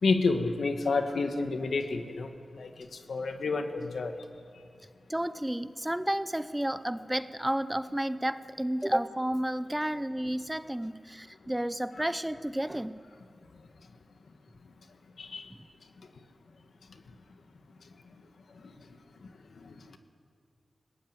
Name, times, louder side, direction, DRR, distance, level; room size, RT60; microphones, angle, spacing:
voice 1, 0.0-2.3 2.5-4.1 15.2-15.5 18.6-18.7 19.6-19.7, left 3 dB, 85° left, 6 dB, 1.7 m, -29 dB
voice 2, 5.1-12.9, right 1 dB, 10° right, 13 dB, 0.8 m, -31 dB
20.5 x 18.0 x 9.2 m, 2.2 s
cardioid pair, 55°, 0 cm